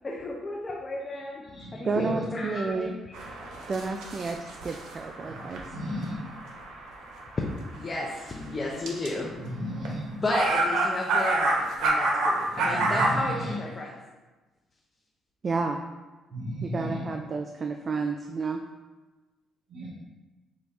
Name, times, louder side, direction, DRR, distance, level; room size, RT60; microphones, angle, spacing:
voice 1, 0.0-3.0 7.7-9.3 10.2-13.9, left 2 dB, 25° left, -2 dB, 0.6 m, -33 dB
voice 2, 1.8-3.1 3.7-5.7 15.4-15.8 16.6-18.6, right 4 dB, 40° right, 4 dB, 0.3 m, -31 dB
sound 1, 3.1-8.3 8.9-9.1 9.9-10.0 10.3-13.1, right 2 dB, 80° right, 0.8 m, -28 dB
voice 3, 5.7-6.2 9.4-10.0 12.6-13.5 16.3-17.0 19.7-19.9, equal, 55° right, -8 dB, 1.4 m, -34 dB
5.5 x 2.5 x 3.4 m, 1.2 s
cardioid pair, 100°, 0 cm